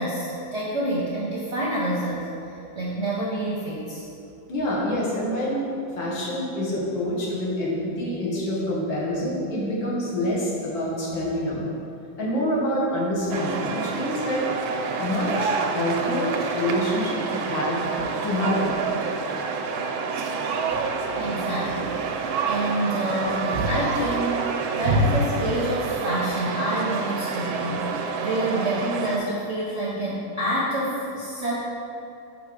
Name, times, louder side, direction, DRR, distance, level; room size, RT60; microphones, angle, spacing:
voice 1, 0.0-4.0 18.0-18.1 20.4-20.9 21.1-22.0 22.4-24.5 24.8-31.5, right 1 dB, 50° right, -6 dB, 0.8 m, -27 dB
voice 2, 4.5-5.7 6.0-11.7 12.2-14.5 15.0-17.9 18.2-18.8, equal, 75° left, -5 dB, 2.0 m, -26 dB
sound 1, 13.3-29.2, right 5 dB, 90° right, 1.4 m, -28 dB
5.4 x 3.9 x 6.0 m, 2.8 s
omnidirectional pair, 2.2 m